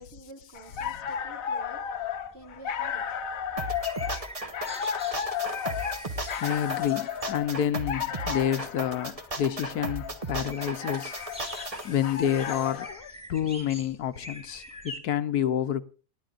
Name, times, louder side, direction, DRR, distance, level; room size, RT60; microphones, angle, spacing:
voice 1, 0.0-3.1 4.7-4.9, right 1 dB, 40° right, 2.4 m, -49 dB
sound 1, 0.6-13.0, left 8 dB, 65° left, 1.2 m, -34 dB
sound 2, 0.6-15.0, left 1 dB, 5° right, 2.3 m, -46 dB
sound 3, 3.6-11.8, right 1 dB, 25° right, 1.1 m, -35 dB
voice 2, 5.5-15.8, left 10 dB, 80° left, 1.4 m, -29 dB
28.5 x 10.5 x 2.5 m
omnidirectional pair, 1.6 m